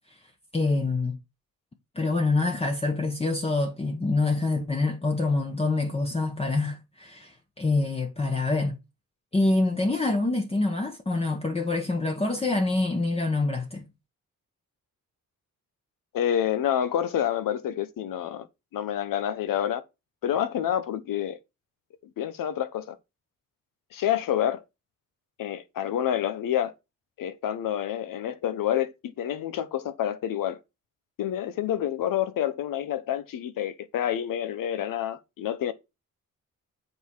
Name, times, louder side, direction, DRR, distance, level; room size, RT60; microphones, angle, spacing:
voice 1, 0.5-1.2 1.9-8.8 9.3-13.8, left 3 dB, 20° left, 1.1 m, -26 dB
voice 2, 16.1-18.5 18.7-19.8 20.2-21.4 22.0-23.0 23.9-24.6 25.4-26.7 27.2-30.6 31.2-35.7, left 10 dB, 80° left, 1.1 m, -28 dB
8.0 x 4.2 x 4.6 m
cardioid pair, 130°, 32 cm